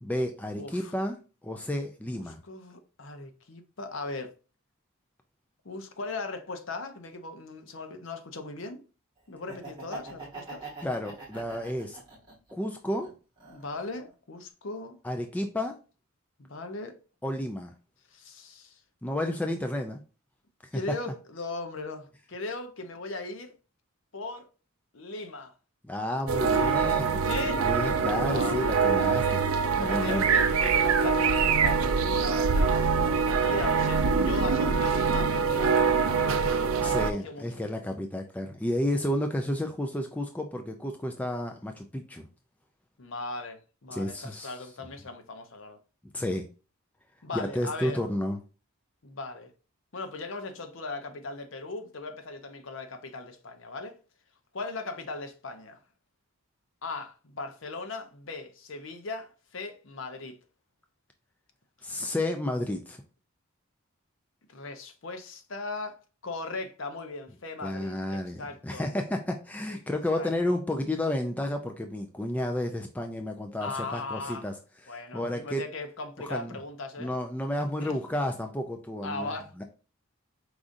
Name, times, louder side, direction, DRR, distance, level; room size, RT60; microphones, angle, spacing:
voice 1, 0.0-1.2 1.4-2.4 10.8-12.0 12.5-13.1 15.0-15.8 17.2-17.7 19.0-20.0 20.6-21.1 25.9-29.4 29.7-30.3 36.8-42.2 43.9-44.5 46.1-46.5 47.3-48.4 61.8-63.0 67.6-74.5 74.8-75.6 76.2-76.6 77.0-79.6, left 1 dB, 5° left, 0.3 m, -31 dB
voice 2, 0.6-0.9 2.1-4.3 5.6-8.9 9.3-10.7 13.5-15.0 16.4-17.0 18.1-18.8 20.7-23.5 24.1-24.5 24.9-25.5 27.2-27.7 28.3-29.4 29.8-37.4 43.0-45.8 47.2-48.0 49.0-49.5 49.9-54.0 54.5-55.8 56.8-60.4 64.5-68.9 69.7-69.8 70.1-70.3 73.6-74.5 74.9-77.2 77.8-78.0 79.0-79.6, left 3 dB, 55° left, 0.7 m, -38 dB
Laughter, 9.3-12.5 13.0-14.1, right 3 dB, 20° right, 1.7 m, -44 dB
sound 1, 26.3-37.1, right 5 dB, 65° right, 0.5 m, -24 dB
4.8 x 3.8 x 2.6 m
head